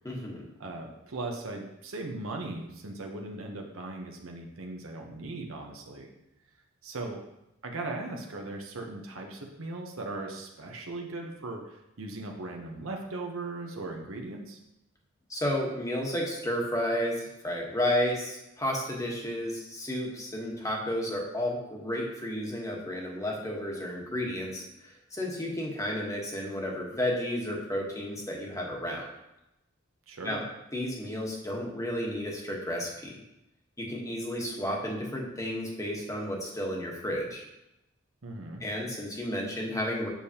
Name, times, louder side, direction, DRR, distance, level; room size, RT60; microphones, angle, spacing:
voice 1, 0.0-0.5 15.3-29.1 30.2-30.4 30.7-33.2 33.8-37.5 38.6-40.1, left 1 dB, 15° left, -1 dB, 1.1 m, -32 dB
voice 2, 0.6-6.1 6.8-7.2 7.6-14.6 30.1-30.4 38.2-38.6, right 2 dB, 85° right, 1 dB, 0.9 m, -38 dB
7.4 x 6.6 x 2.8 m, 0.90 s
head